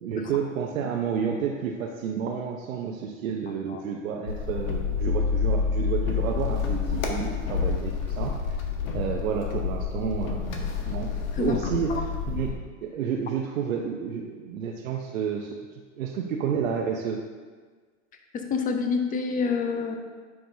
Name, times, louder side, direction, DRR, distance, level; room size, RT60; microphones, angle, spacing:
voice 1, 0.0-8.6 8.9-11.1 11.4-12.5 12.8-15.6 16.0-17.2, right 7 dB, 85° right, 0 dB, 0.8 m, -30 dB
sound 1, 4.3-12.5, left 6 dB, 85° left, 1.2 m, -28 dB
voice 2, 18.3-20.0, left 5 dB, 20° left, 5 dB, 0.7 m, -27 dB
9.4 x 5.9 x 2.7 m, 1.5 s
hypercardioid pair, 120°, 40 cm